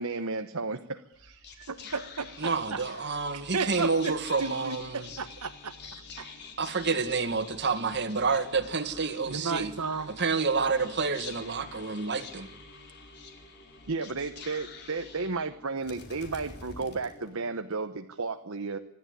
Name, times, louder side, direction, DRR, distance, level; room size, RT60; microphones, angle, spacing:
voice 1, 0.0-1.7 13.9-18.8, right 3 dB, 65° right, 1.1 m, -33 dB
Whispering, 1.1-17.7, left 4 dB, 50° left, 3.7 m, -47 dB
voice 2, 1.7-2.8 3.5-6.3 9.3-10.1, right 4 dB, 90° right, 1.3 m, -34 dB
voice 3, 2.4-5.1 6.6-9.7 10.2-12.5, right 4 dB, 50° right, 1.9 m, -29 dB
26.5 x 12.0 x 9.7 m
head